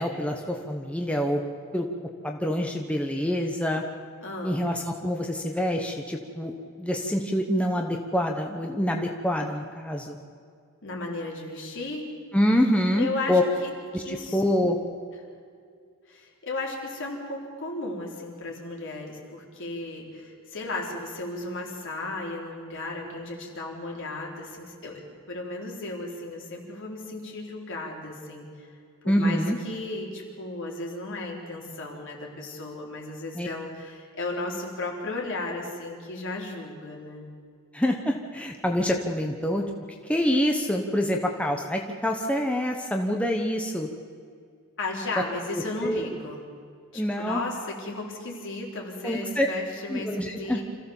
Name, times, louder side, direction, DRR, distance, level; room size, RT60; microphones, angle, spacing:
voice 1, 0.0-1.4 1.7-1.9 2.2-3.8 4.4-6.5 6.8-10.2 12.3-13.4 13.9-14.8 29.1-29.6 33.3-33.5 37.7-43.9 45.8-46.1 46.9-47.4 49.0-49.5 49.9-50.6, equal, 5° left, 2 dB, 1.2 m, -26 dB
voice 2, 4.2-4.7 10.8-12.1 13.0-14.4 16.1-25.0 25.3-28.7 29.0-37.3 44.8-46.4 46.9-50.6, left 2 dB, 60° left, -1 dB, 4.0 m, -35 dB
26.5 x 15.0 x 7.3 m, 2.2 s
head